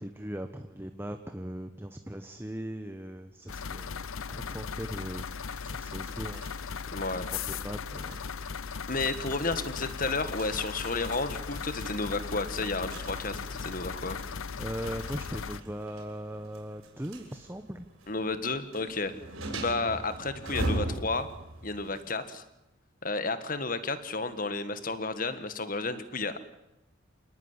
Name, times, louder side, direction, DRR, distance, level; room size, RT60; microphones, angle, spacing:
voice 1, 0.0-6.4 7.3-8.2 14.6-17.9, right 1 dB, 10° right, 8 dB, 1.1 m, -39 dB
sound 1, 3.5-15.6, left 6 dB, 80° left, 0.8 m, -37 dB
sound 2, 5.2-22.1, right 1 dB, 85° right, 7.1 m, -42 dB
voice 2, 6.9-7.3 8.9-14.2 18.1-19.1 19.5-21.3 21.6-22.4 23.0-26.4, left 3 dB, 40° left, 12 dB, 1.7 m, -32 dB
27.5 x 19.0 x 9.8 m, 0.93 s
head